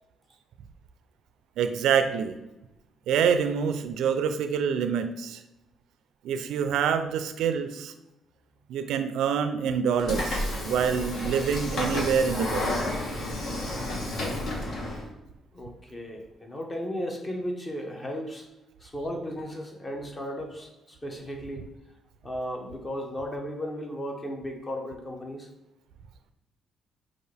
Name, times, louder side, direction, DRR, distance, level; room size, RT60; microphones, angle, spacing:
voice 1, 1.6-2.4 3.1-5.4 6.2-7.9 8.7-12.8, right 7 dB, 85° right, 9 dB, 0.3 m, -26 dB
Train / Sliding door, 10.0-15.0, left 1 dB, 60° left, 1.1 m, -31 dB
voice 2, 15.5-18.5 18.8-21.7 22.2-25.5, equal, 25° left, 2 dB, 1.0 m, -35 dB
5.6 x 2.5 x 3.3 m, 0.95 s
cardioid pair, 90°, 0 cm